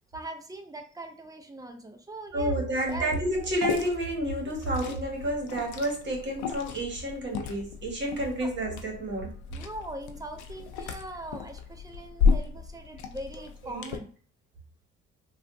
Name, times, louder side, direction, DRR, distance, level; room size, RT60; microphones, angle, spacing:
voice 1, 0.1-2.6 2.8-3.1 8.4-8.5 9.5-14.2, right 1 dB, 10° right, 5 dB, 0.5 m, -41 dB
voice 2, 2.3-9.3 13.6-13.9, right 1 dB, 40° right, 0 dB, 1.4 m, -30 dB
Liquid, 2.9-14.0, left 5 dB, 90° left, 0.5 m, -33 dB
3.4 x 2.3 x 2.6 m, 0.43 s
cardioid pair, 105°, 29 cm